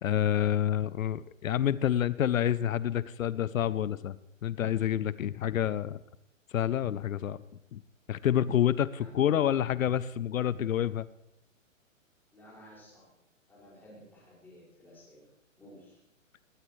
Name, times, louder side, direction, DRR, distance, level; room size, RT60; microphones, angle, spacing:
voice 1, 0.0-6.0 6.5-7.4 7.7-7.8 8.1-11.1, left 10 dB, 85° left, 18 dB, 0.6 m, -28 dB
voice 2, 8.9-9.5 12.3-13.1 13.5-15.3 15.6-16.0, left 1 dB, 5° left, -7 dB, 5.6 m, -52 dB
20.5 x 13.0 x 3.2 m, 0.85 s
hypercardioid pair, 155°, 40 cm